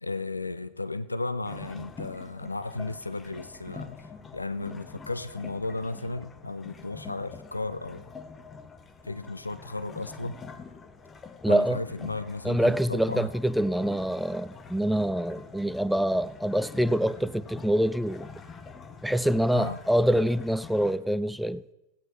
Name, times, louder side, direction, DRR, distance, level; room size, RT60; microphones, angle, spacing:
voice 1, 0.0-8.1 9.0-10.4 11.5-13.3 19.5-19.8, left 3 dB, 80° left, 0.4 m, -34 dB
sound 1, 1.4-21.0, left 5 dB, 20° left, 0.7 m, -45 dB
voice 2, 11.4-11.8 12.4-18.3 19.0-21.6, right 1 dB, ahead, 0.3 m, -25 dB
16.0 x 9.1 x 3.1 m
figure-of-eight pair, 90°, 0 cm